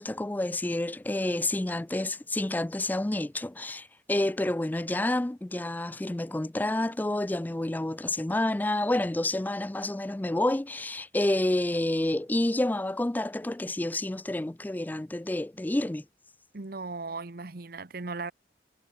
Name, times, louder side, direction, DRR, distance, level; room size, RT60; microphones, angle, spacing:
voice 1, 0.0-16.1, left 1 dB, 10° left, 0.3 m, -29 dB
voice 2, 16.5-18.3, right 3 dB, 55° right, 1.0 m, -37 dB
head